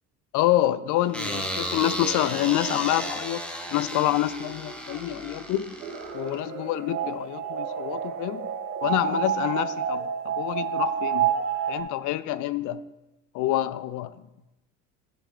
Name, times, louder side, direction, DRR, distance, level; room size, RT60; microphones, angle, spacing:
voice 1, 0.3-3.4 3.7-5.7 6.1-8.5 8.8-11.3 11.7-12.8 13.3-14.1, left 13 dB, 40° left, 17 dB, 0.6 m, -27 dB
sound 1, 1.1-6.4, equal, ahead, 1.1 m, -34 dB
sound 2, 5.8-11.8, right 8 dB, 75° right, 2.1 m, -29 dB
14.5 x 5.2 x 3.3 m, 0.95 s
figure-of-eight pair, 70°, 47 cm